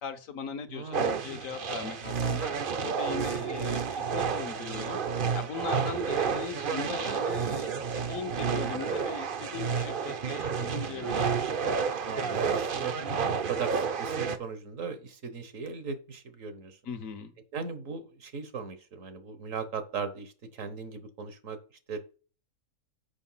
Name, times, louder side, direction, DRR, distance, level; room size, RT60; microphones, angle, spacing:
voice 1, 0.0-0.9 1.2-2.5 2.8-5.0 5.3-11.3 16.8-17.3, left 6 dB, 70° left, 1.4 m, -39 dB
voice 2, 0.7-1.2 12.0-12.9 13.3-16.8 17.5-21.6 21.9-22.0, right 5 dB, 70° right, 1.5 m, -38 dB
sound 1, 0.9-14.4, right 6 dB, 45° right, 0.8 m, -30 dB
7.0 x 5.4 x 5.6 m
omnidirectional pair, 1.5 m